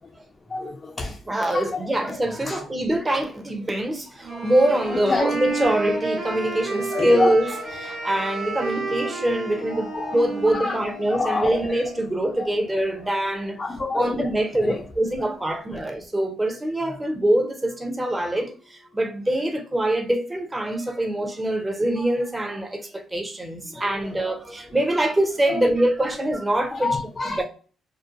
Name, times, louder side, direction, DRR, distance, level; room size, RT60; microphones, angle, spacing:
voice 1, 0.5-1.2 1.5-2.2 2.5-2.6 4.3-4.5 4.9-5.3 6.9-7.4 9.7-10.2 10.5-10.8 11.1-11.8 12.4-12.5 13.6-14.9 15.2-15.8 23.7-23.9 25.5-25.7 26.7-27.4, left 3 dB, 30° left, 0.4 m, -28 dB
voice 2, 1.3-7.5 7.8-13.6 13.9-27.0 27.4-27.5, right 1 dB, 20° right, 0.6 m, -24 dB
Wind instrument woodwind instrument, 4.2-12.1, right 3 dB, 55° right, 0.7 m, -31 dB
sound 1, 4.7-15.5 15.8-15.9 16.2-16.4 16.9-17.3 17.8-17.9 18.1-18.6 18.9-19.0, left 6 dB, 85° left, 0.6 m, -44 dB
2.6 x 2.1 x 2.5 m
cardioid pair, 90°, 0 cm